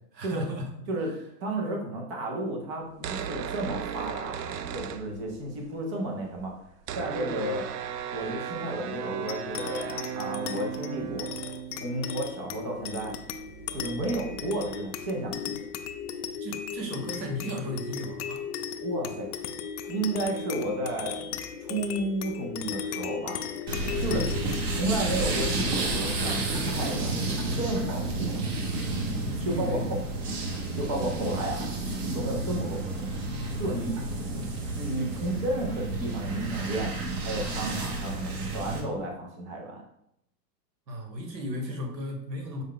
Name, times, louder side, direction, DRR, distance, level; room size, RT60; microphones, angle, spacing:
voice 1, 0.1-0.8 1.1-1.2 16.4-18.5 19.8-19.9 23.9-24.4 29.0-29.9 40.9-42.6, equal, 90° right, 2 dB, 1.3 m, -35 dB
voice 2, 1.4-6.5 6.9-7.7 8.1-11.3 11.7-13.1 13.7-15.6 18.8-19.3 19.9-23.4 24.0-24.2 24.7-28.4 29.4-30.0 30.8-31.7 32.1-33.2 33.6-34.5 34.8-39.8, right 1 dB, 20° right, 1 dB, 0.4 m, -32 dB
sound 1, 2.9-5.6 5.9-6.0 6.2-15.6, right 8 dB, 75° right, 0.5 m, -37 dB
sound 2, 9.3-28.1, left 7 dB, 70° left, 0.5 m, -37 dB
sound 3, 23.7-38.8, right 2 dB, 40° right, 0.9 m, -31 dB
4.7 x 2.2 x 3.7 m, 0.78 s
hypercardioid pair, 135°, 49 cm